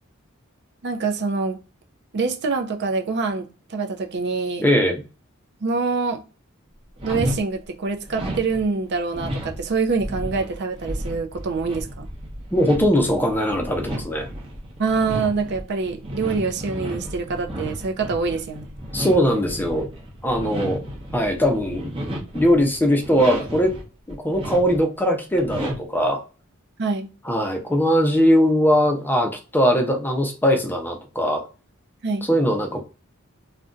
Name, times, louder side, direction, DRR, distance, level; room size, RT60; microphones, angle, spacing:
voice 1, 0.8-1.6 2.1-4.7 5.6-6.2 7.0-12.1 14.8-18.7 26.8-27.1 32.0-32.3, right 4 dB, 55° right, 0.5 m, -25 dB
voice 2, 4.6-5.0 12.5-14.3 18.9-19.9 20.2-20.8 21.1-21.9 22.3-23.7 24.1-26.2 27.2-31.4 32.3-32.8, equal, 10° left, 0.6 m, -20 dB
sound 1, 7.0-7.4 8.1-23.8 24.1-24.9 25.3-26.0, equal, 25° right, 0.8 m, -33 dB
2.5 x 2.2 x 3.7 m
head